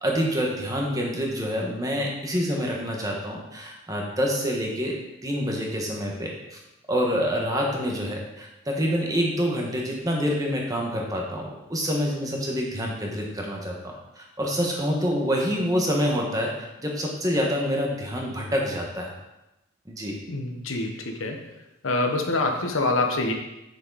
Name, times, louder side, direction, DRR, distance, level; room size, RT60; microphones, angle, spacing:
voice 1, 0.0-5.0 5.2-6.6 6.9-19.1 19.9-20.2, equal, 20° right, -1 dB, 1.4 m, -27 dB
voice 2, 20.3-21.4 21.8-23.3, left 2 dB, 80° left, 3 dB, 1.1 m, -25 dB
7.7 x 6.5 x 4.1 m, 0.95 s
head